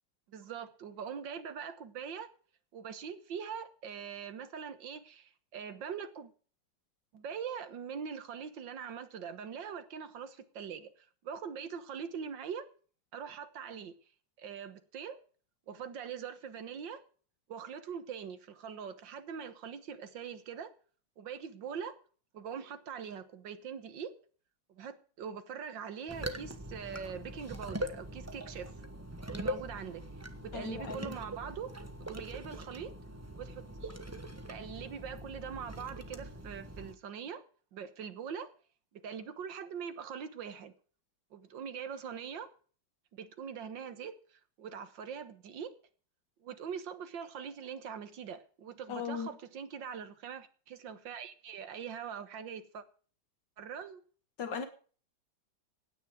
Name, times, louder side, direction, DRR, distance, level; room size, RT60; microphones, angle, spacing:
voice 1, 0.3-2.3 2.7-6.3 7.1-12.7 13.1-14.0 14.4-15.2 15.7-17.0 17.5-20.7 21.2-22.0 22.3-24.1 24.7-28.7 29.3-30.0 30.4-31.7 32.0-32.9 33.3-34.0 34.5-37.5 37.7-38.5 38.9-40.7 41.3-42.5 43.1-45.7 46.4-52.8 53.6-54.0, right 7 dB, 85° right, 2.0 m, -42 dB
sound 1, 26.1-36.9, right 1 dB, 10° right, 0.9 m, -42 dB
voice 2, 30.5-31.2 48.9-49.3 54.4-54.7, left 6 dB, 70° left, 2.0 m, -37 dB
16.5 x 9.7 x 4.9 m
omnidirectional pair, 2.0 m